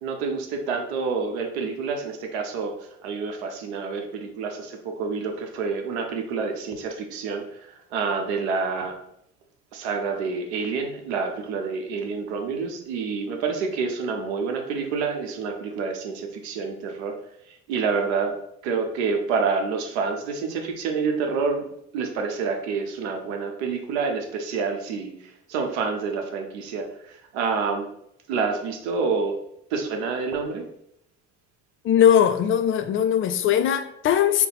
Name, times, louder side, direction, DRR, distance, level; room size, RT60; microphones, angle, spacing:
voice 1, 0.0-8.9 9.7-17.1 17.5-18.3 18.6-21.6 21.9-27.9 28.3-29.4 29.7-30.7, right 5 dB, 75° right, 0.7 m, -28 dB
voice 2, 31.8-34.5, left 9 dB, 40° left, 0.4 m, -20 dB
3.9 x 2.1 x 4.0 m
hypercardioid pair, 65°, 33 cm